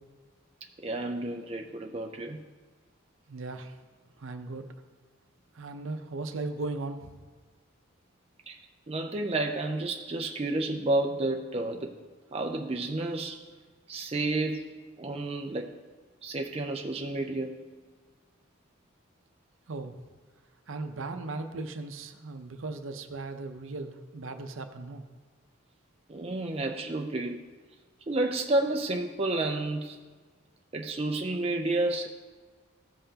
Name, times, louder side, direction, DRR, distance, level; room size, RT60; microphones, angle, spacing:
voice 1, 0.8-2.4 8.5-8.6 8.9-11.9 12.3-13.4 13.9-14.7 15.0-15.7 16.2-17.6 26.1-27.4 28.1-30.0 30.7-32.1, right 2 dB, 30° right, 3 dB, 0.4 m, -30 dB
voice 2, 3.3-3.7 4.2-4.7 5.5-7.1 19.7-19.9 20.7-25.1, right 3 dB, 70° right, 7 dB, 0.6 m, -37 dB
14.5 x 5.6 x 2.8 m, 1.4 s
head